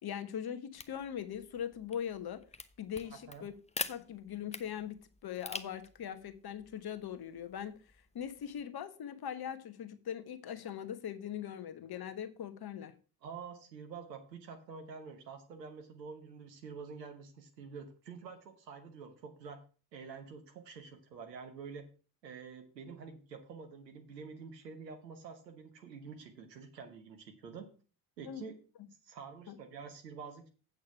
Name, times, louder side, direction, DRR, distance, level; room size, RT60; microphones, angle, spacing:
voice 1, 0.0-2.4 2.8-3.5 3.9-7.7 8.1-12.9 28.2-28.4 29.5-29.6, left 9 dB, 50° left, 1.3 m, -41 dB
sound 1, 0.7-8.6, left 3 dB, 15° left, 0.8 m, -47 dB
voice 2, 13.2-19.6 19.9-21.8 22.2-27.6 28.2-28.6 28.9-30.5, right 5 dB, 85° right, 1.2 m, -48 dB
8.3 x 6.5 x 5.7 m
figure-of-eight pair, 40°, 48 cm